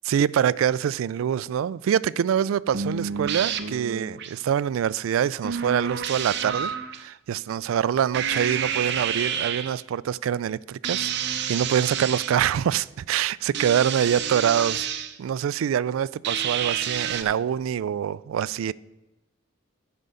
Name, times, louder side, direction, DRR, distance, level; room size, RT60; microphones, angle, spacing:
voice 1, 0.0-14.9 15.2-18.7, right 9 dB, 85° right, 0.3 m, -25 dB
sound 1, 2.7-4.3 5.4-7.0 8.1-9.8 10.8-12.4 13.5-15.2 16.2-17.2, right 7 dB, 55° right, 0.7 m, -29 dB
11.0 x 5.3 x 6.8 m
head